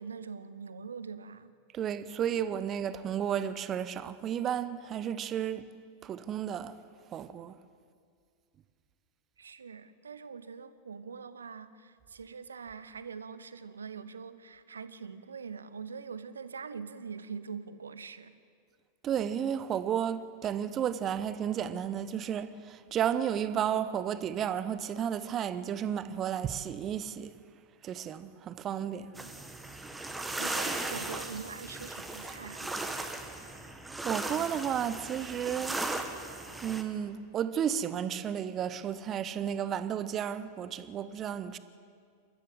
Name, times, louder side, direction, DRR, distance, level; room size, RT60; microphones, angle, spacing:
voice 1, 0.0-1.5 9.4-18.4 30.4-32.7, right 5 dB, 70° right, 1.0 m, -43 dB
voice 2, 1.7-5.7 6.0-6.8 7.1-7.6 19.0-27.3 27.8-29.2 34.0-35.8 36.6-41.6, right 9 dB, 30° right, 1.0 m, -32 dB
sound 1, 29.1-36.8, right 2 dB, 5° right, 1.8 m, -37 dB
27.5 x 13.5 x 7.9 m
figure-of-eight pair, 90°, 0 cm